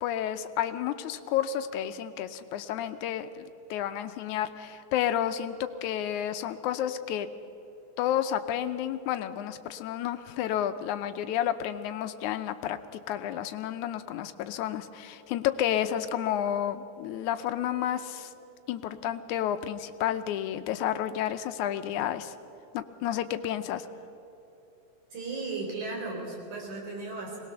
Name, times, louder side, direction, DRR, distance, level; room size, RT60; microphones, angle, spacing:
voice 1, 0.0-7.3 8.0-12.8 13.1-18.3 18.7-22.4 22.7-23.9, left 10 dB, 85° left, 10 dB, 2.1 m, -31 dB
voice 2, 25.1-27.4, right 3 dB, 85° right, 0 dB, 5.5 m, -35 dB
22.0 x 19.5 x 6.8 m, 2.9 s
omnidirectional pair, 3.4 m